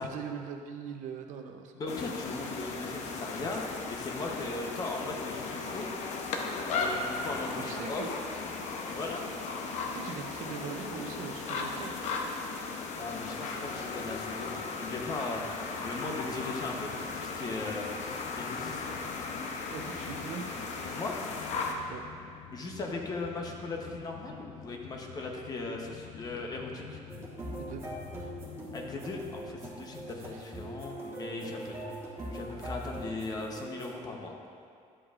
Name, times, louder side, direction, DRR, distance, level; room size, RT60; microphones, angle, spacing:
voice 1, 0.0-1.7 7.6-8.1 9.8-12.3 15.7-15.8 19.7-20.8 21.9-22.0 27.6-27.8 28.1-28.3 30.3-30.4, right 6 dB, 70° right, 5 dB, 0.7 m, -41 dB
voice 2, 1.7-5.9 6.7-8.0 8.8-9.2 13.0-17.9 18.3-19.0 20.9-21.2 22.5-27.0 28.7-31.8 32.3-34.4, left 3 dB, 30° left, 1 dB, 0.9 m, -38 dB
sound 1, 1.9-21.7, left 4 dB, 60° left, 0.8 m, -36 dB
sound 2, 13.3-30.4, left 9 dB, 90° left, 0.5 m, -50 dB
sound 3, 27.1-33.9, right 1 dB, 20° right, 1.4 m, -41 dB
11.0 x 7.8 x 2.5 m, 2.5 s
cardioid pair, 165°, 13 cm